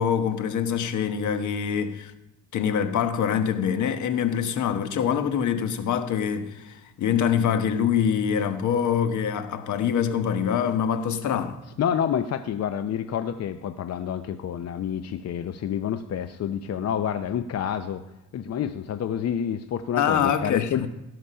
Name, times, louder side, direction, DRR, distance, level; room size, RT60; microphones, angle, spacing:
voice 1, 0.0-2.1 2.5-11.6 20.0-20.9, left 8 dB, 75° left, 1.2 m, -25 dB
voice 2, 11.8-18.0 18.3-20.9, left 9 dB, 55° left, 0.7 m, -28 dB
17.5 x 5.9 x 5.7 m
cardioid pair, 90°, 30 cm